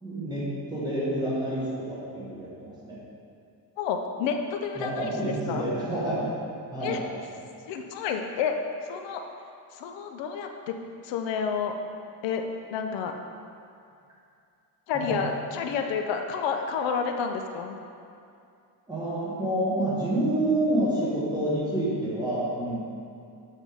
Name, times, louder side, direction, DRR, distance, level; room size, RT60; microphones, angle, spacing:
voice 1, 0.0-3.0 4.7-6.3 6.7-7.1 14.9-15.2 18.9-22.9, right 1 dB, 10° right, -9 dB, 1.4 m, -28 dB
voice 2, 3.8-5.1 5.5-5.7 6.8-7.0 7.7-8.5 8.9-9.2 9.8-10.7 11.0-11.7 12.2-12.4 12.7-13.1 14.9-17.8, left 6 dB, 75° left, 5 dB, 0.6 m, -29 dB
7.2 x 5.7 x 3.5 m, 2.5 s
cardioid pair, 180°, 45 cm